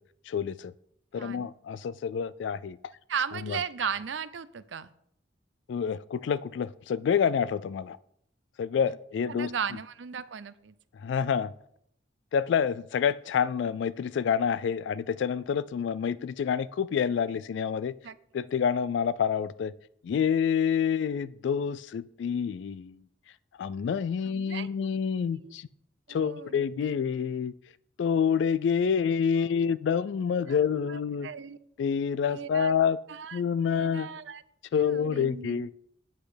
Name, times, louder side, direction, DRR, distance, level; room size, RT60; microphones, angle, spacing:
voice 1, 0.3-0.7 1.1-2.8 3.5-3.6 5.7-8.0 8.6-9.5 11.0-11.5 12.3-17.9 18.3-19.7 20.0-23.0 23.6-25.7 26.1-27.5 28.0-31.3 31.8-33.0 33.3-34.1 34.7-35.7, left 7 dB, 65° left, 0.3 m, -27 dB
voice 2, 1.2-1.5 3.1-4.9 9.3-10.7 18.0-18.2 24.2-25.5 26.1-26.9 29.3-29.7 30.5-31.6 32.3-32.8 33.1-33.4 33.7-34.4 34.8-35.7, right 7 dB, 70° right, 0.5 m, -37 dB
8.6 x 8.1 x 5.0 m
head